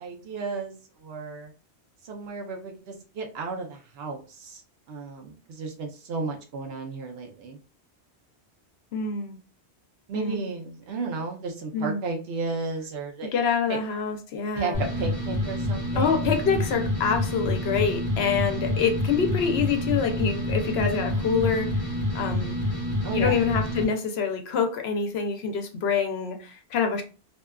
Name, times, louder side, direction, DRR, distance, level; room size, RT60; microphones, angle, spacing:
voice 1, 0.0-1.5 2.0-4.6 4.9-7.6 10.1-13.3 13.7-13.8 14.6-16.4 23.0-23.4, right 4 dB, 70° right, 0.9 m, -33 dB
voice 2, 8.9-9.4 10.1-10.5 11.7-12.0 13.3-14.9 16.0-21.8 22.1-22.6 23.1-27.0, left 6 dB, 70° left, 0.8 m, -26 dB
sound 1, 14.7-23.8, left 1 dB, 40° right, 1.2 m, -28 dB
2.7 x 2.3 x 2.2 m
omnidirectional pair, 1.1 m